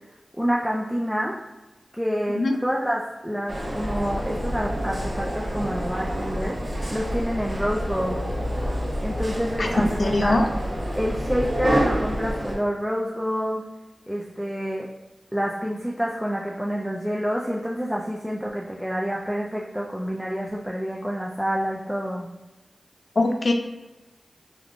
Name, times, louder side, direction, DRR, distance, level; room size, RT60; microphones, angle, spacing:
voice 1, 0.4-1.4 2.0-6.6 6.9-8.2 9.0-10.4 11.0-13.6 14.1-14.9 15.3-22.3, equal, ahead, -3 dB, 0.4 m, -27 dB
sound 1, 3.5-12.6, equal, 45° right, 0.9 m, -28 dB
voice 2, 10.0-10.5 23.2-23.5, left 2 dB, 65° left, 4 dB, 0.4 m, -21 dB
3.5 x 2.3 x 2.4 m, 1.1 s
cardioid pair, 45°, 0 cm